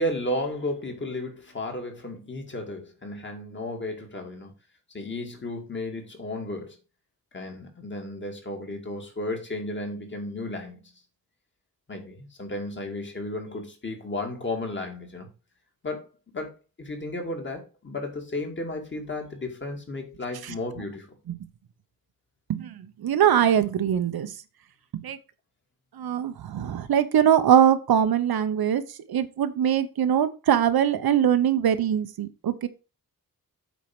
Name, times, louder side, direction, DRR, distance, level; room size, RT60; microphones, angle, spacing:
voice 1, 0.0-4.5 4.9-6.8 7.3-10.8 11.9-15.3 15.8-16.1 16.3-21.1, left 1 dB, 30° left, 2.2 m, -33 dB
voice 2, 23.0-24.3 25.0-25.2 26.0-28.8 29.1-32.7, right 9 dB, 85° right, 0.9 m, -22 dB
8.3 x 4.5 x 6.0 m
wide cardioid pair, 175°, 36 cm